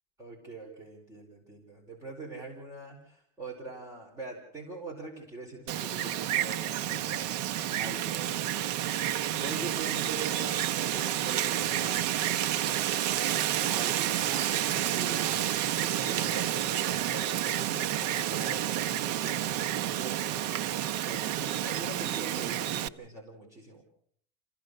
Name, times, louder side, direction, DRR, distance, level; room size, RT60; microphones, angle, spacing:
voice 1, 0.2-7.4 7.8-8.4 9.1-12.2 13.7-17.9 18.2-20.7 21.0-23.8, right 3 dB, 15° right, 0 dB, 4.4 m, -43 dB
Wind, 5.7-22.9, right 12 dB, 90° right, 1.0 m, -30 dB
27.5 x 16.0 x 6.5 m, 0.63 s
cardioid pair, 175°, 20 cm